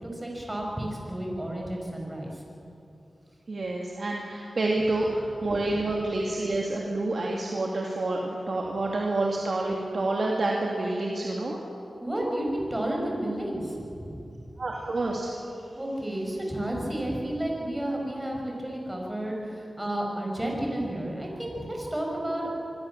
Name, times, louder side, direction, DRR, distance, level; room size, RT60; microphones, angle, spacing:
voice 1, 0.0-2.4 12.0-14.4 15.8-22.5, right 1 dB, 15° right, -1 dB, 6.7 m, -31 dB
voice 2, 3.5-11.6 14.6-15.3, right 2 dB, 60° right, -1 dB, 2.7 m, -28 dB
25.0 x 23.5 x 7.5 m, 2.7 s
wide cardioid pair, 75°, 0 cm